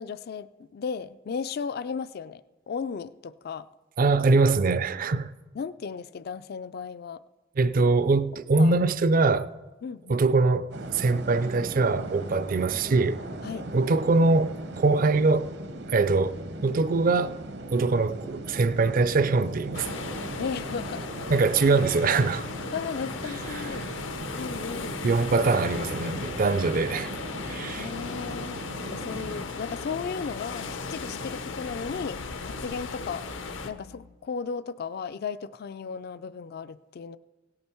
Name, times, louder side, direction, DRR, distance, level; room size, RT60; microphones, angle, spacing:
voice 1, 0.0-2.4 2.7-3.7 5.5-7.2 8.6-8.7 9.8-10.2 13.4-13.7 20.4-21.1 22.7-23.9 24.3-25.0 27.8-28.6 28.9-33.2 33.6-37.2, left 6 dB, 55° left, 0.4 m, -35 dB
voice 2, 4.0-5.3 7.6-9.5 10.1-13.2 13.7-15.5 15.9-17.4 17.7-19.9 21.3-22.5 23.6-23.7 25.0-27.1 27.5-27.9, right 3 dB, 45° right, 0.4 m, -23 dB
sound 1, 10.7-29.5, right 2 dB, 60° right, 0.9 m, -39 dB
sound 2, 19.7-33.7, left 4 dB, 80° left, 0.9 m, -37 dB
sound 3, 26.1-34.1, left 5 dB, 90° right, 2.3 m, -48 dB
17.0 x 8.7 x 4.5 m
head